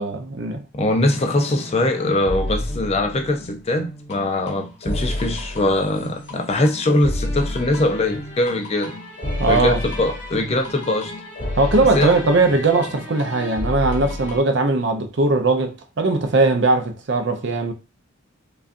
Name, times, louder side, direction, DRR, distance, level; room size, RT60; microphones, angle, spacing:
voice 1, 0.0-0.6 9.4-9.8 11.6-17.7, right 3 dB, 60° right, 0.5 m, -19 dB
voice 2, 0.7-8.9 9.5-11.1 11.9-12.1, left 1 dB, 30° left, 0.5 m, -21 dB
sound 1, 1.1-14.4, left 1 dB, 55° left, 2.1 m, -30 dB
4.9 x 2.4 x 2.5 m
head